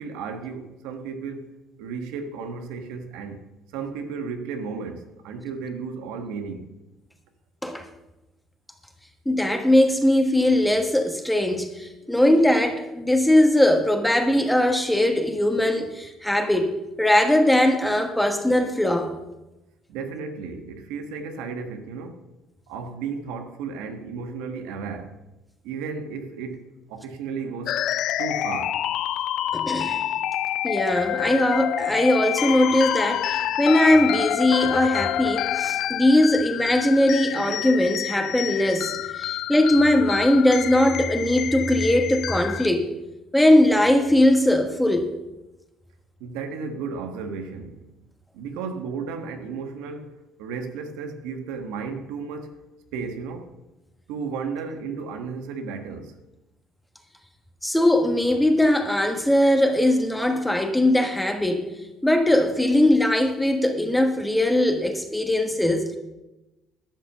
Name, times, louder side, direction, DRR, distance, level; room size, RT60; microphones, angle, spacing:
voice 1, 0.0-3.4 3.7-6.7 19.9-22.2 22.7-25.2 25.6-27.8 28.2-28.8 38.9-39.0 46.2-47.9 48.3-52.6 52.9-53.5 54.1-56.2, right 5 dB, 90° right, 1.3 m, -34 dB
voice 2, 9.2-19.1 29.5-30.0 30.6-42.9 43.3-45.1 57.6-61.7 62.0-66.0, left 1 dB, 5° left, 1.3 m, -20 dB
sound 1, 27.7-42.7, left 12 dB, 65° left, 0.4 m, -28 dB
12.0 x 6.0 x 6.6 m
cardioid pair, 95°, 0 cm